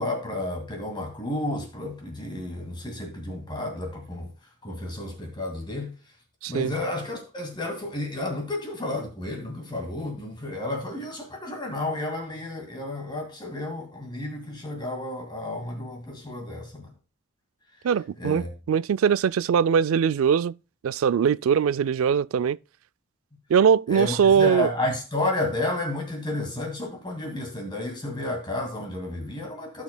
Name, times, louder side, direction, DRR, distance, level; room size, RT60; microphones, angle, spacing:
voice 1, 0.0-6.1 6.5-16.9 18.2-18.5 23.9-29.8, left 2 dB, 20° left, 2.1 m, -31 dB
voice 2, 17.8-20.6 20.8-22.6 23.5-24.7, right 7 dB, 85° right, 0.3 m, -21 dB
16.5 x 6.3 x 2.2 m
head